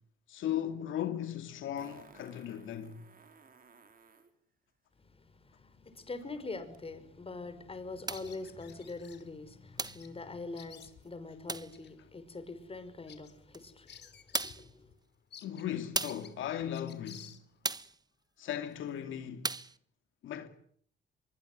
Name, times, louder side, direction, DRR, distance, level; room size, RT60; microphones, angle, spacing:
voice 1, 0.3-3.0 15.4-17.4 18.4-19.5 20.2-20.5, left 10 dB, 80° left, 2.6 m, -37 dB
Fart, 0.7-0.8 1.8-4.3 6.7-6.8, right 5 dB, 45° right, 5.3 m, -57 dB
voice 2, 5.0-14.9, left 3 dB, 30° left, 5.6 m, -44 dB
Bird vocalization bird call bird song, 8.1-9.2 9.8-10.1 10.4-11.2 11.7-11.9 12.3-12.4 12.8-14.7 14.9-15.0 15.3-17.8, left 8 dB, 60° left, 3.5 m, -54 dB
sound 1, 8.1-8.4 9.8-10.1 11.5-11.8 13.5-13.6 14.3-14.7 15.9-16.3 17.6-18.0 19.4-19.8, right 3 dB, 20° right, 1.3 m, -36 dB
24.5 x 22.5 x 9.4 m
cardioid pair, 90°, 20 cm